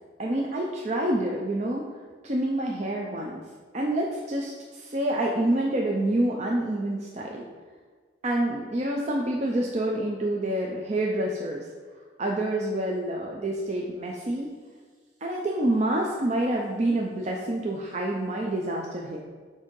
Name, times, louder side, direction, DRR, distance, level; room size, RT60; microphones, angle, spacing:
voice 1, 0.2-1.9 2.2-3.4 3.7-7.4 8.2-11.6 12.2-14.5 15.2-19.2, right 1 dB, 35° right, -1 dB, 0.5 m, -27 dB
8.2 x 2.7 x 5.2 m, 1.5 s
head